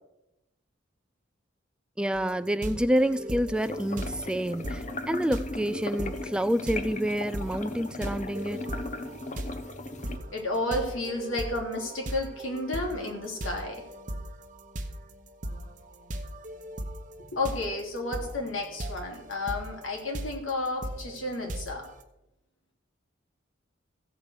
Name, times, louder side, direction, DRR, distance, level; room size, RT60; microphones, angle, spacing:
voice 1, 2.0-8.7, equal, 5° right, 0.4 m, -28 dB
sound 1, 2.1-22.0, right 1 dB, 40° right, 1.0 m, -39 dB
sound 2, 3.5-10.2, left 2 dB, 40° left, 0.8 m, -37 dB
voice 2, 10.1-13.8 17.3-21.9, left 2 dB, 90° left, 3.2 m, -32 dB
15.0 x 5.2 x 8.2 m
head